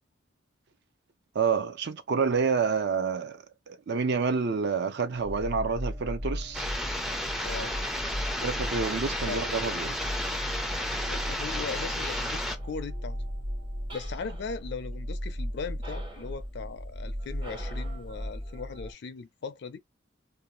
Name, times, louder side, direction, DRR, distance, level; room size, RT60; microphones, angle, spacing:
voice 1, 1.3-6.7 8.4-10.0, right 5 dB, 60° right, 0.5 m, -28 dB
sound 1, 5.2-18.9, equal, 80° right, 1.4 m, -36 dB
sound 2, 6.5-12.6, left 1 dB, ahead, 0.4 m, -33 dB
voice 2, 7.4-7.7 9.3-9.4 11.1-13.2 13.9-19.8, left 5 dB, 60° left, 0.4 m, -38 dB
sound 3, 12.0-12.8 13.9-14.7 15.8-16.4 17.4-18.1, right 2 dB, 25° right, 0.8 m, -47 dB
2.6 x 2.3 x 3.0 m
head